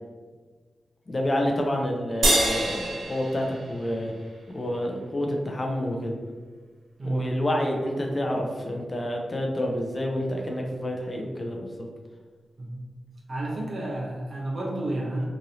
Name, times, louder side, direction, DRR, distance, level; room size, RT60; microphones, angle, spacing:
voice 1, 1.1-4.1 4.5-6.1 7.0-11.9, left 1 dB, 40° left, 1 dB, 0.6 m, -28 dB
sound 1, 2.2-4.8, right 1 dB, 90° right, 0.6 m, -27 dB
voice 2, 7.0-7.3 12.6-12.8 13.3-15.3, right 2 dB, 60° right, -4 dB, 0.8 m, -30 dB
3.0 x 2.5 x 2.7 m, 1.4 s
cardioid pair, 45°, 0 cm